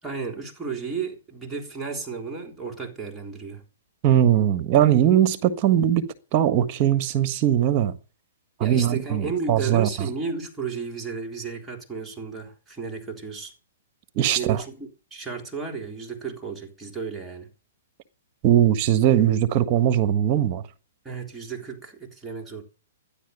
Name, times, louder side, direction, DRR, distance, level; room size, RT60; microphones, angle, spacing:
voice 1, 0.0-3.6 8.6-13.5 14.4-17.5 21.0-22.6, right 5 dB, 10° right, 3.7 m, -33 dB
voice 2, 4.0-6.0 6.3-7.9 8.6-10.1 14.1-14.6 18.4-20.6, right 11 dB, 40° right, 1.5 m, -20 dB
12.5 x 10.5 x 6.7 m
hypercardioid pair, 135°, 0 cm